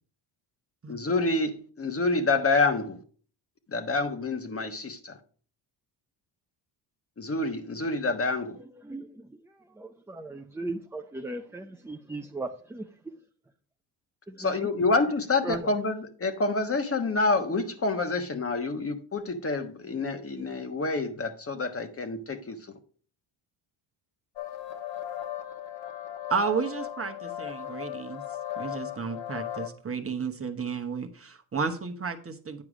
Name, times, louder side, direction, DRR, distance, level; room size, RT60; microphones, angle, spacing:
voice 1, 0.9-3.0 3.7-5.2 7.2-8.6 14.4-22.6, left 3 dB, 25° left, 1.2 m, -27 dB
voice 2, 9.8-12.8 14.3-14.5 15.4-15.7, right 2 dB, 5° right, 0.5 m, -37 dB
sound 1, 24.4-29.7, left 11 dB, 60° left, 1.6 m, -37 dB
voice 3, 26.3-28.2 28.6-32.6, right 5 dB, 25° right, 1.1 m, -32 dB
9.5 x 4.8 x 4.9 m
cardioid pair, 85°, 50 cm